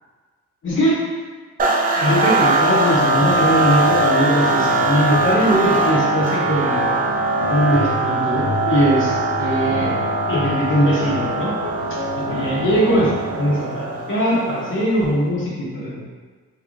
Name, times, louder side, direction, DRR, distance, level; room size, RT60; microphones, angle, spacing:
voice 1, 0.6-1.0 2.0-7.1 7.5-9.9 10.3-11.5 11.9-12.0 12.3-13.1 13.4-16.0, equal, 40° left, -7 dB, 1.1 m, -20 dB
sound 1, 1.6-15.0, right 2 dB, 30° right, 0.4 m, -21 dB
sound 2, 3.1-13.6, left 4 dB, 60° left, 0.7 m, -31 dB
3.1 x 2.5 x 3.1 m, 1.4 s
cardioid pair, 90°, 30 cm